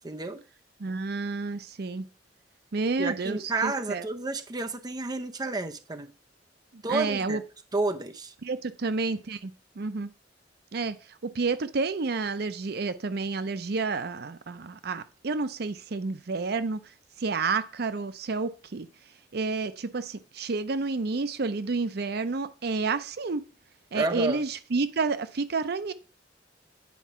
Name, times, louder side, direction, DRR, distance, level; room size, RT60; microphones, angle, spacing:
voice 1, 0.0-0.4 3.0-6.1 6.8-7.4 7.7-8.3 23.9-24.4, right 3 dB, 20° right, 0.6 m, -30 dB
voice 2, 0.8-2.1 2.7-4.0 6.7-7.4 8.4-10.1 10.7-11.0 11.3-16.8 17.2-18.9 19.3-23.4 23.9-25.9, right 4 dB, 60° right, 0.6 m, -30 dB
9.3 x 4.7 x 5.5 m
head